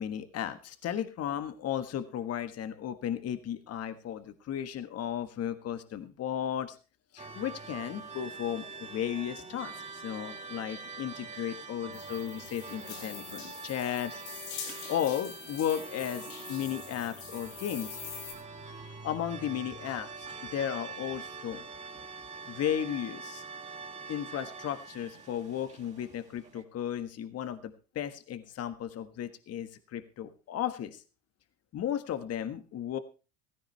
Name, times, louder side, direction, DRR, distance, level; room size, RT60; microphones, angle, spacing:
voice 1, 0.0-6.8 7.1-14.2 14.7-18.0 19.0-21.6 22.5-23.4 24.1-31.0 31.7-33.0, left 10 dB, 40° left, 10 dB, 1.6 m, -35 dB
sound 1, 7.2-26.6, right 4 dB, 20° right, 3.3 m, -44 dB
sound 2, 11.9-18.3, left 8 dB, 70° left, 5.5 m, -44 dB
16.0 x 15.5 x 3.3 m, 0.33 s
hypercardioid pair, 80°, 36 cm